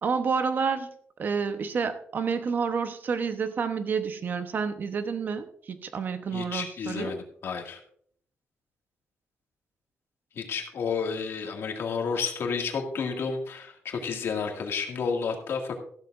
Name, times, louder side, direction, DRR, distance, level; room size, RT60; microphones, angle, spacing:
voice 1, 0.0-0.9 1.2-7.1, right 5 dB, 45° right, 9 dB, 0.9 m, -29 dB
voice 2, 6.3-7.8 10.4-15.8, left 5 dB, 60° left, 2 dB, 2.1 m, -31 dB
14.5 x 12.5 x 2.5 m, 0.62 s
wide cardioid pair, 145°, 5 cm